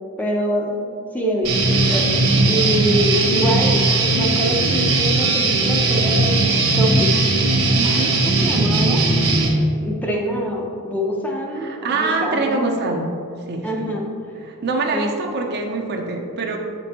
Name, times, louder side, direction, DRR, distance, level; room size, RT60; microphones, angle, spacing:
voice 1, 0.2-0.9 1.1-3.8 4.1-7.1 7.8-9.0 9.8-12.7 13.6-14.0 14.9-15.1, equal, 5° left, -1 dB, 0.6 m, -25 dB
Guitar, 1.4-9.5, right 2 dB, 70° right, 1.3 m, -18 dB
voice 2, 7.8-8.2 11.5-13.1 13.5-13.9 14.4-16.6, right 3 dB, 50° right, 2 dB, 0.6 m, -25 dB
7.2 x 5.2 x 2.9 m, 2.4 s
head